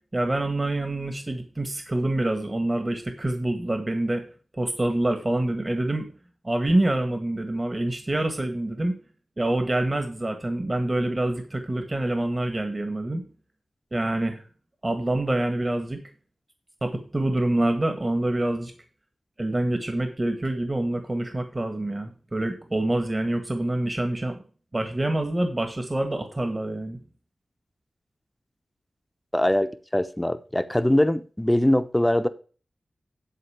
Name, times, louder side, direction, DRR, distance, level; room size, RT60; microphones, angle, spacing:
voice 1, 0.1-4.2 4.5-6.1 6.4-9.0 9.4-13.2 13.9-14.4 14.8-16.0 16.8-18.7 19.4-24.4 24.7-27.0, right 1 dB, 30° right, 7 dB, 1.8 m, -26 dB
voice 2, 29.3-32.3, left 1 dB, 10° left, 10 dB, 0.9 m, -22 dB
11.0 x 4.1 x 6.8 m, 0.38 s
cardioid pair, 55°, 0 cm